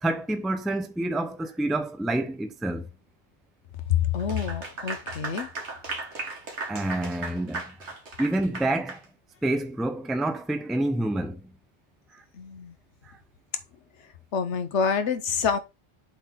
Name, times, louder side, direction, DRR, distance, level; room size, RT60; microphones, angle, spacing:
voice 1, 0.0-2.9 6.7-9.0 9.4-11.5 12.1-12.2 13.0-13.2, right 1 dB, ahead, 0.6 m, -28 dB
voice 2, 3.9-5.5 12.3-12.7 14.3-15.6, left 7 dB, 80° left, 1.2 m, -27 dB
Clapping / Applause, 4.2-9.0, right 3 dB, 80° right, 2.0 m, -36 dB
7.8 x 3.9 x 4.7 m
omnidirectional pair, 1.2 m